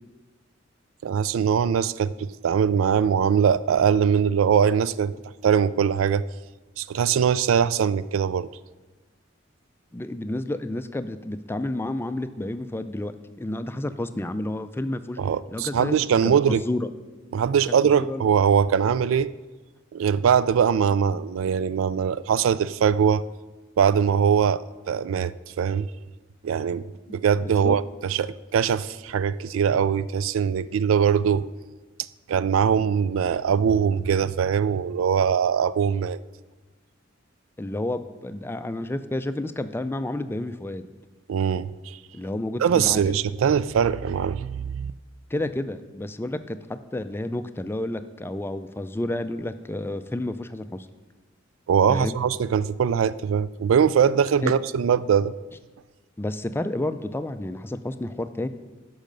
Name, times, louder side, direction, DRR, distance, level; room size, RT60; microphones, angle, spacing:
voice 1, 1.0-5.1 5.4-6.2 6.8-8.5 15.2-16.6 17.3-19.3 19.9-23.2 23.8-25.9 26.4-26.9 27.1-31.5 32.3-36.2 41.3-42.0 42.6-44.9 51.7-55.3, right 7 dB, 85° right, 17 dB, 0.3 m, -22 dB
voice 2, 9.9-15.2 15.5-16.0 16.2-16.9 18.1-18.2 27.1-27.2 27.6-27.8 37.6-40.9 42.1-43.0 45.3-50.9 51.9-52.1 54.4-54.5 56.2-58.5, left 1 dB, 10° left, 11 dB, 0.4 m, -30 dB
10.0 x 6.5 x 5.3 m, 1.2 s
head